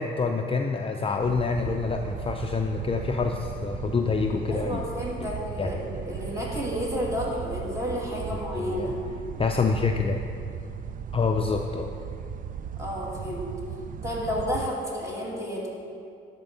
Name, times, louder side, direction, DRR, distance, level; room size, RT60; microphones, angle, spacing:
voice 1, 0.0-4.8 5.6-5.7 8.5-8.9 9.4-10.2 11.1-11.9, left 4 dB, 30° left, 3 dB, 0.5 m, -26 dB
sound 1, 1.2-14.7, right 8 dB, 45° right, 0.4 m, -37 dB
voice 2, 4.5-9.0 12.8-13.5 14.0-15.7, equal, 15° right, -4 dB, 2.6 m, -31 dB
11.0 x 4.5 x 6.8 m, 2.4 s
cardioid pair, 90°, 20 cm